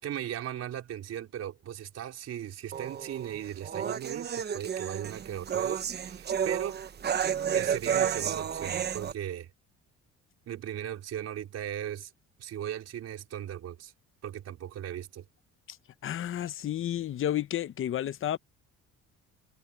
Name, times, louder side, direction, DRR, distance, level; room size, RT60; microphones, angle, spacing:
voice 1, 0.0-6.8 7.5-9.5 10.5-12.1 12.4-13.9 14.2-15.2, right 10 dB, 60° right, 4.8 m, -37 dB
sound 1, 2.7-9.1, right 8 dB, 35° right, 1.1 m, -31 dB
voice 2, 16.0-18.4, left 11 dB, 45° left, 0.9 m, -31 dB
cardioid pair, 135°, 29 cm